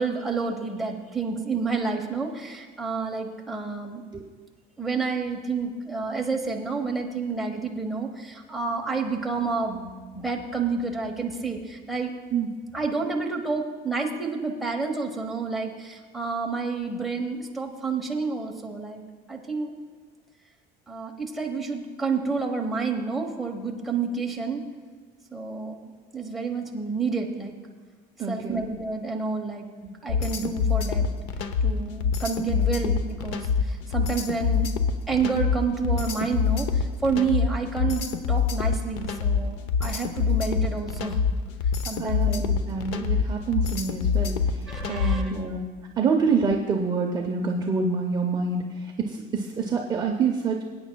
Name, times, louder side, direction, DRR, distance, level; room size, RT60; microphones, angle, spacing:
voice 1, 0.0-4.0 4.8-12.1 12.7-19.0 19.3-19.7 20.9-24.6 25.3-27.6 28.3-29.7 30.0-31.1 31.6-34.7 35.1-41.2 41.8-42.4 44.7-45.3, right 4 dB, ahead, -1 dB, 1.0 m, -29 dB
voice 2, 28.2-28.6 42.0-44.4 44.9-45.6 46.0-48.6 49.0-50.6, right 5 dB, 20° right, 1 dB, 0.6 m, -26 dB
sound 1, 30.1-45.3, left 6 dB, 85° left, 0.8 m, -25 dB
22.0 x 9.1 x 2.3 m, 1.5 s
cardioid pair, 160°, 18 cm